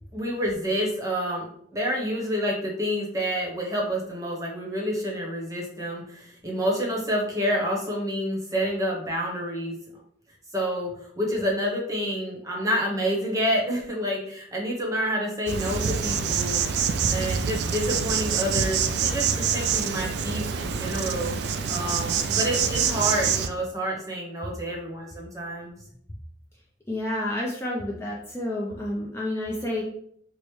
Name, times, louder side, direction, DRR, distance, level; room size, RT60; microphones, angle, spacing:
voice 1, 0.1-9.8 10.5-16.6 17.1-21.3 21.7-25.7, equal, 20° right, -1 dB, 0.8 m, -28 dB
Insect, 15.5-23.5, right 6 dB, 60° right, 0.3 m, -26 dB
voice 2, 26.9-29.8, left 1 dB, 15° left, -3 dB, 0.4 m, -29 dB
4.6 x 2.1 x 3.0 m, 0.67 s
head